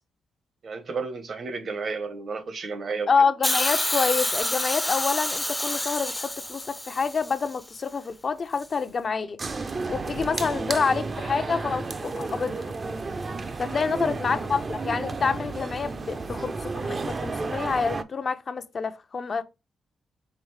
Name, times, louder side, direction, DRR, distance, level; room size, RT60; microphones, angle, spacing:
voice 1, 0.6-3.1 13.7-14.2, right 4 dB, 60° right, 1.0 m, -33 dB
voice 2, 3.1-9.4 9.9-12.8 13.6-19.4, left 5 dB, 50° left, 0.6 m, -27 dB
Hiss, 3.4-7.6 8.6-8.7, left 1 dB, 10° left, 0.5 m, -28 dB
sound 1, 9.4-18.0, right 3 dB, 40° right, 0.6 m, -32 dB
5.0 x 3.1 x 3.2 m
supercardioid pair, 55°, 0 cm